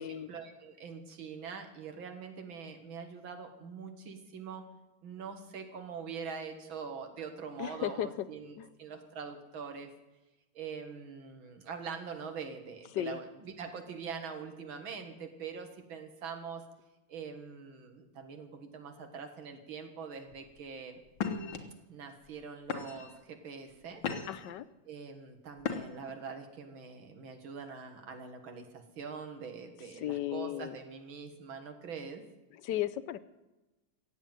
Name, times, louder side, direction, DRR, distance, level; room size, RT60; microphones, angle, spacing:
voice 1, 0.0-4.7 5.0-9.9 10.5-16.7 17.1-21.0 21.9-24.0 24.9-32.2, right 6 dB, 80° right, 6 dB, 2.5 m, -43 dB
voice 2, 7.6-8.1 8.6-8.7 12.9-13.2 24.3-24.7 30.0-30.7 32.6-33.2, left 12 dB, 70° left, 13 dB, 1.3 m, -35 dB
sound 1, 20.3-20.6 21.1-21.6 22.2-22.4 22.7-23.2 23.7-24.5 25.6-26.1, left 6 dB, 90° left, 2.3 m, -36 dB
15.5 x 8.5 x 9.1 m, 1.1 s
omnidirectional pair, 2.2 m